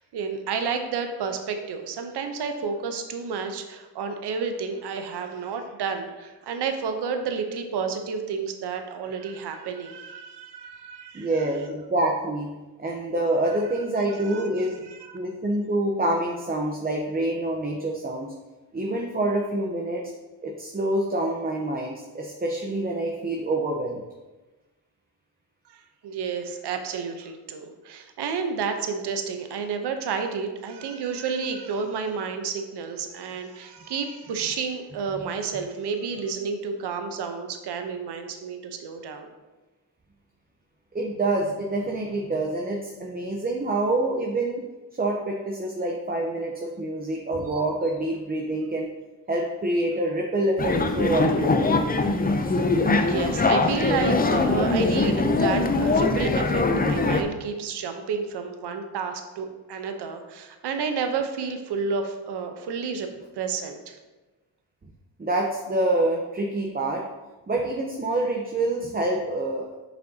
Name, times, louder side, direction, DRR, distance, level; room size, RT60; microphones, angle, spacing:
voice 1, 0.1-11.3 14.2-14.5 14.9-15.2 25.7-39.3 52.8-63.1 63.4-64.0, right 5 dB, 70° right, 6 dB, 0.9 m, -31 dB
voice 2, 11.1-12.5 12.8-18.3 18.7-20.0 20.4-24.0 40.9-44.7 45.0-48.9 49.3-51.8 65.2-67.0 67.5-69.7, right 1 dB, 20° right, 0 dB, 0.8 m, -26 dB
viking battle, 50.6-57.2, left 3 dB, 20° left, 0.6 m, -22 dB
7.6 x 5.4 x 2.8 m, 1.2 s
cardioid pair, 70°, 42 cm